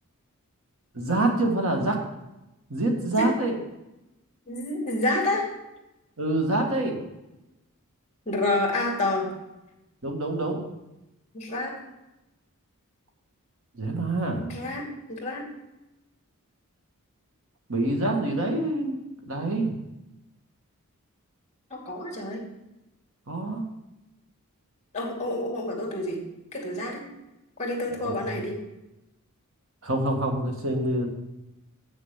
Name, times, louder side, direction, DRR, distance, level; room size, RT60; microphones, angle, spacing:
voice 1, 0.9-2.0 2.7-3.6 6.2-7.0 10.0-10.6 13.7-14.4 17.7-19.7 23.3-23.6 27.9-28.4 29.8-31.1, right 2 dB, 65° right, 2 dB, 1.7 m, -26 dB
voice 2, 4.5-5.5 8.3-9.3 11.3-11.8 14.4-15.5 21.7-22.5 24.9-27.1 27.6-28.6, left 2 dB, 30° left, 1 dB, 2.4 m, -29 dB
7.3 x 6.9 x 7.2 m, 0.95 s
head